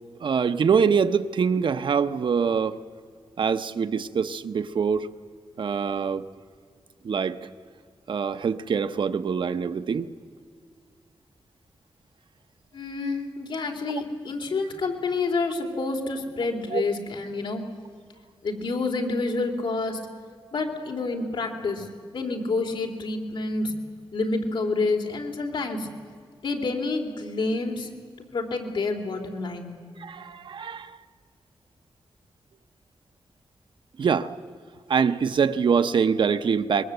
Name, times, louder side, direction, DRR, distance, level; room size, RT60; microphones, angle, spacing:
voice 1, 0.2-2.8 3.4-5.1 5.6-6.3 7.0-7.5 8.1-10.1 13.9-14.0 16.7-16.8 30.0-31.0 34.0-34.3 34.9-36.8, right 6 dB, 60° right, 0.8 m, -24 dB
voice 2, 12.7-17.6 18.4-20.0 20.5-21.9 22.1-23.7 24.1-25.9 26.4-27.9 28.2-29.8, left 3 dB, 65° left, 3.4 m, -28 dB
25.0 x 22.0 x 8.0 m
wide cardioid pair, 150°, 9 cm